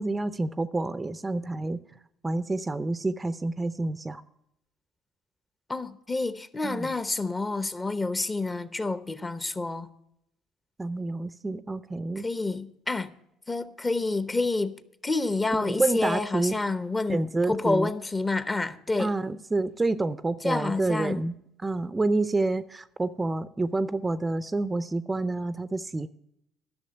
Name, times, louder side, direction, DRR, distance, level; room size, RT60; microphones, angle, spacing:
voice 1, 0.0-1.8 2.2-4.2 6.6-6.9 10.8-12.2 15.6-16.6 17.1-17.9 19.0-21.3 21.6-26.1, right 2 dB, 20° right, 0.5 m, -28 dB
voice 2, 5.7-9.9 12.2-13.1 13.5-14.7 15.0-19.1 20.4-21.2, left 3 dB, 20° left, 0.8 m, -28 dB
11.5 x 6.3 x 7.8 m
hypercardioid pair, 65°, 0 cm